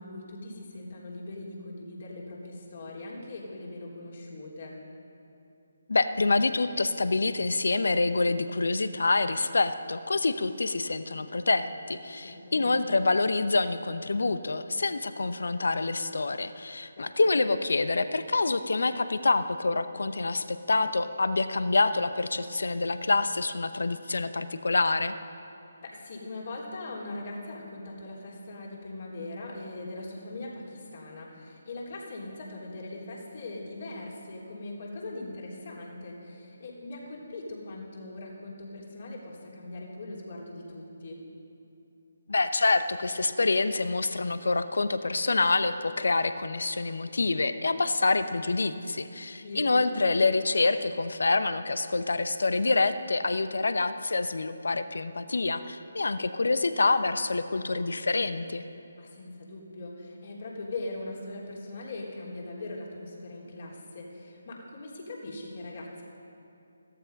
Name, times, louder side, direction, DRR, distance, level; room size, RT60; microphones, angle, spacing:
voice 1, 0.0-4.7 12.2-12.8 17.0-17.1 25.8-41.2 49.4-49.6 59.0-66.0, left 2 dB, 50° left, -2 dB, 3.6 m, -40 dB
voice 2, 5.9-25.2 42.3-58.6, left 3 dB, 65° left, 11 dB, 0.8 m, -26 dB
15.0 x 13.5 x 5.3 m, 2.8 s
figure-of-eight pair, 150°, 0 cm